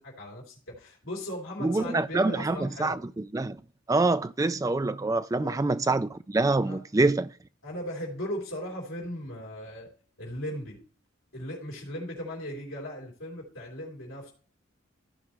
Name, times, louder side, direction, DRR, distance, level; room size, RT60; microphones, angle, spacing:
voice 1, 0.0-3.0 5.3-5.6 6.7-6.8 7.6-9.9 10.2-10.8 11.3-14.3, equal, 75° left, 3.4 m, -37 dB
voice 2, 1.6-3.0 3.3-3.6 3.9-7.3, right 2 dB, 15° right, 0.3 m, -25 dB
15.0 x 5.0 x 3.0 m
head